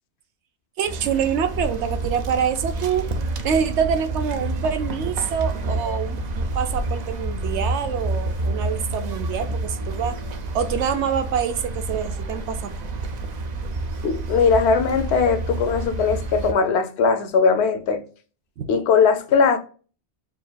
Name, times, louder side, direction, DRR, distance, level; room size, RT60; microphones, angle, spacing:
sound 1, 0.8-16.5, right 2 dB, 50° right, 0.5 m, -29 dB
voice 1, 0.8-3.1 3.4-10.2 10.5-12.9 18.6-18.7, right 7 dB, 85° right, 0.9 m, -26 dB
voice 2, 14.0-18.0 18.7-19.6, left 5 dB, 75° left, 0.9 m, -19 dB
6.3 x 2.5 x 2.2 m
omnidirectional pair, 1.1 m